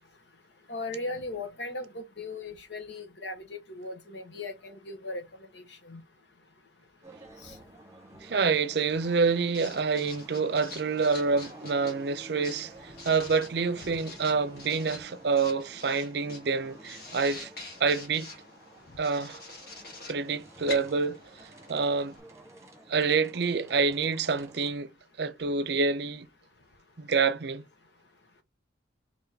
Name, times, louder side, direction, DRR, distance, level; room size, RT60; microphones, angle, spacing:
voice 1, 0.7-5.2 5.9-6.0, left 2 dB, 70° left, 1.2 m, -37 dB
sound 1, 7.0-24.7, right 1 dB, 15° right, 1.2 m, -51 dB
voice 2, 8.2-17.5 17.8-18.3 19.0-19.4 20.1-21.2 21.7-22.1 22.9-24.9 25.2-26.3 27.0-27.6, right 4 dB, 60° right, 0.6 m, -27 dB
Writing, 8.9-22.2, left 2 dB, 55° left, 1.8 m, -46 dB
4.4 x 3.0 x 3.9 m
head